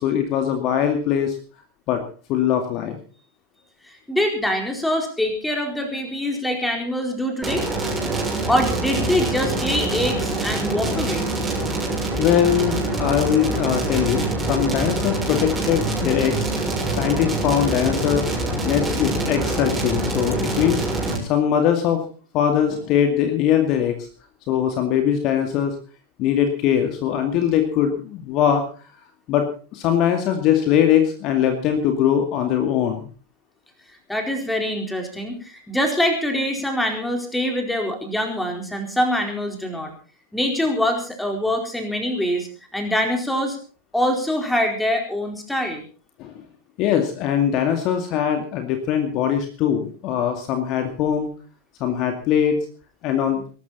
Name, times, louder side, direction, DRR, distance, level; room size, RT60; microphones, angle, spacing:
voice 1, 0.0-1.4 1.9-2.0 2.3-3.0 12.2-16.5 16.9-18.2 18.6-20.8 21.2-22.0 22.3-24.1 24.5-25.7 26.2-28.6 29.3-29.4 29.7-33.1 46.2-46.3 46.8-51.3 51.8-52.6 53.0-53.4, left 9 dB, 40° left, 5 dB, 2.3 m, -21 dB
voice 2, 3.9-7.6 8.5-11.3 34.1-39.9 40.3-43.6 43.9-45.8, equal, 5° left, 3 dB, 4.4 m, -24 dB
sound 1, 7.4-21.2, right 2 dB, 15° right, 6.8 m, -25 dB
22.0 x 12.5 x 4.2 m, 0.40 s
figure-of-eight pair, 90°, 0 cm